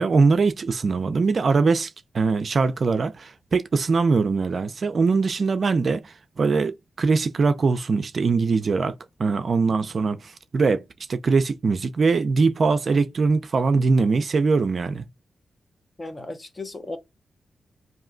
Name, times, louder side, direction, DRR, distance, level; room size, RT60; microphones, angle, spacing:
voice 1, 0.0-1.9 2.1-10.2 10.5-10.8 11.1-15.0, right 4 dB, 55° right, 0.4 m, -22 dB
voice 2, 16.0-17.0, left 2 dB, 30° left, 0.7 m, -35 dB
2.6 x 2.2 x 3.7 m
cardioid pair, 80°, 0 cm